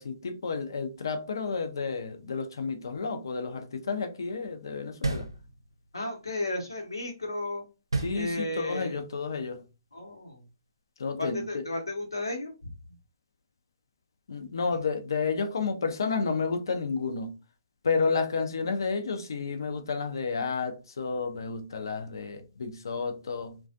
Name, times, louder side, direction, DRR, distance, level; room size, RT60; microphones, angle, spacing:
voice 1, 0.0-5.3 8.0-9.6 11.0-11.6 14.3-17.3 17.8-23.6, left 4 dB, 70° left, 0.5 m, -31 dB
sound 1, 5.0-5.9 7.9-8.8, right 3 dB, 85° right, 0.5 m, -32 dB
voice 2, 5.9-7.6 8.1-9.0 9.9-10.4 11.2-12.9, left 2 dB, 90° left, 0.9 m, -34 dB
2.4 x 2.2 x 2.5 m
figure-of-eight pair, 135°, 2 cm